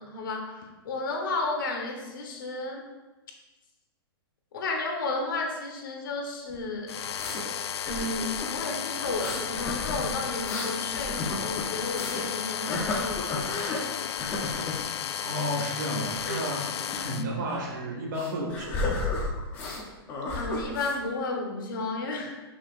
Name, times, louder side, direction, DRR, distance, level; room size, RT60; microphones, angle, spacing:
voice 1, 0.0-2.9 4.5-7.0 7.8-13.8 17.2-17.5 20.3-22.3, left 2 dB, 55° left, 2 dB, 1.4 m, -33 dB
sound 1, 6.5-7.4 7.9-8.5 9.1-12.3 12.7-13.8 14.2-14.8 16.1-16.4 16.9-17.1 17.4-17.6 18.2-19.8 20.1-21.0, left 2 dB, 15° left, 0.8 m, -33 dB
sound 2, 6.9-17.2, left 8 dB, 80° left, 0.5 m, -33 dB
voice 2, 15.2-16.7 17.0-19.1, equal, 50° right, -1 dB, 1.9 m, -32 dB
11.5 x 6.2 x 2.6 m, 1.1 s
hypercardioid pair, 180°, 13 cm